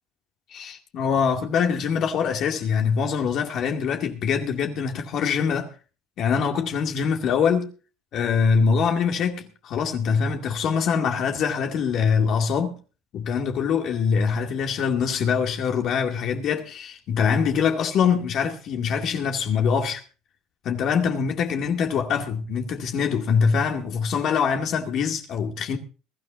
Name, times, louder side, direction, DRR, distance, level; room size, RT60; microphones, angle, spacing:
voice 1, 0.5-5.7 6.2-7.7 8.1-12.7 13.1-20.0 20.6-25.8, left 6 dB, 50° left, 2.2 m, -24 dB
22.5 x 13.0 x 2.5 m
cardioid pair, 135°, 0 cm